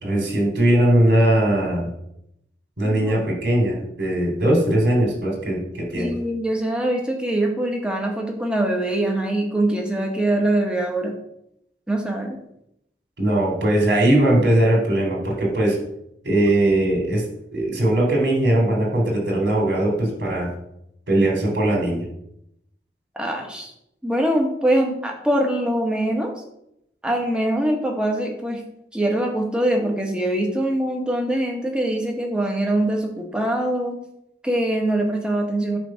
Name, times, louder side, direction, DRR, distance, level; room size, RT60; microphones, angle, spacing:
voice 1, 0.0-1.9 2.8-6.1 13.2-15.8 16.2-17.2 17.5-20.5 21.1-22.0, right 1 dB, 80° right, -1 dB, 3.1 m, -20 dB
voice 2, 2.8-3.3 6.0-11.1 11.9-12.4 23.2-23.7 24.0-26.3 27.0-28.6 28.9-34.0 34.4-35.8, right 1 dB, 5° right, 1 dB, 1.2 m, -23 dB
9.0 x 3.4 x 6.3 m, 0.78 s
head